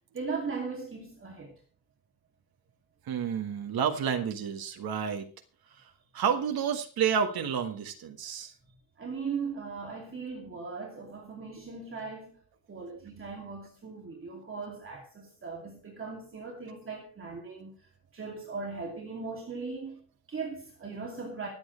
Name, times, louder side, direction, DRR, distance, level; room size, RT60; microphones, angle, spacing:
voice 1, 0.1-1.6 9.0-12.4 12.7-21.5, right 4 dB, 35° right, 2.7 m, -38 dB
voice 2, 3.0-5.3 5.7-8.5, right 7 dB, 90° right, 1.6 m, -30 dB
25.0 x 8.8 x 3.3 m
wide cardioid pair, 175°, 36 cm